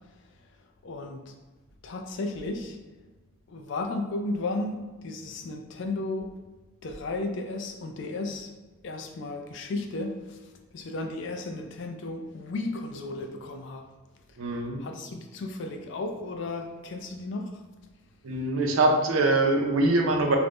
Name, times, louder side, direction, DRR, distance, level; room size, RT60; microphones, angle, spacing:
voice 1, 0.8-1.3 1.8-2.8 3.5-6.4 6.8-8.5 8.8-10.4 10.7-13.9 14.5-14.6 14.8-17.6, left 2 dB, 55° left, 4 dB, 0.3 m, -34 dB
voice 2, 14.4-14.8 18.2-20.4, right 2 dB, 75° right, 3 dB, 0.5 m, -23 dB
2.5 x 2.0 x 3.4 m, 1.3 s
head